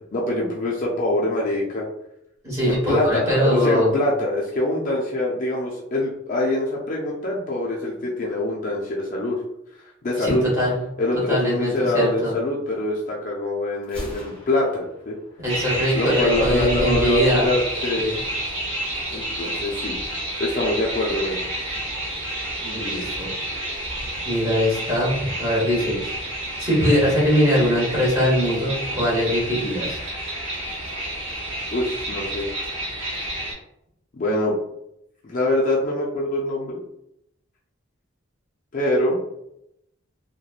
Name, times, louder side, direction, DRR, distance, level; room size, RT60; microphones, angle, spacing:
voice 1, 0.1-1.9 2.7-9.4 10.0-10.4 11.0-15.2 15.9-18.1 19.1-19.9 20.4-21.4 31.7-32.5 34.1-34.5 35.2-36.8 38.7-39.2, left 1 dB, 40° left, -3 dB, 0.4 m, -24 dB
voice 2, 2.4-3.9 10.2-10.8 11.3-12.3 15.4-17.5 17.9-18.2 22.6-23.3 24.2-25.9 26.6-30.0, equal, 15° right, -7 dB, 1.1 m, -21 dB
Gunshot gunfire, 13.8-15.8, left 1 dB, 5° left, 0.8 m, -40 dB
sound 1, 15.5-33.5, right 1 dB, 65° right, 0.9 m, -30 dB
3.0 x 2.2 x 2.3 m, 0.81 s
head